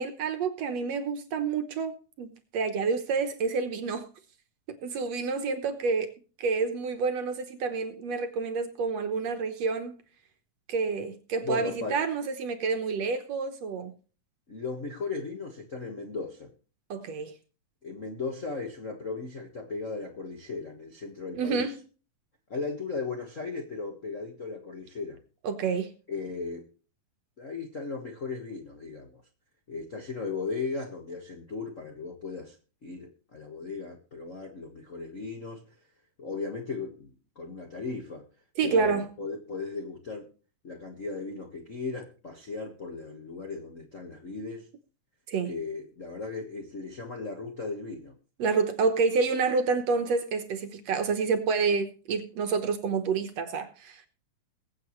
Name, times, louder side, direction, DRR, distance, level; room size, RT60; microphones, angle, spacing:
voice 1, 0.0-4.1 4.7-6.1 6.4-10.0 10.7-13.9 16.9-17.3 21.3-21.8 25.4-25.9 38.6-39.1 45.3-45.5 48.4-54.1, right 4 dB, 65° right, 2.0 m, -28 dB
voice 2, 11.4-12.0 14.5-16.5 17.8-21.7 22.5-25.2 26.1-26.7 27.4-29.2 29.7-32.6 32.8-35.6 36.2-38.2 38.6-40.3 40.6-44.7 45.5-48.1, left 4 dB, 40° left, 1.1 m, -36 dB
22.0 x 8.1 x 3.1 m
omnidirectional pair, 3.6 m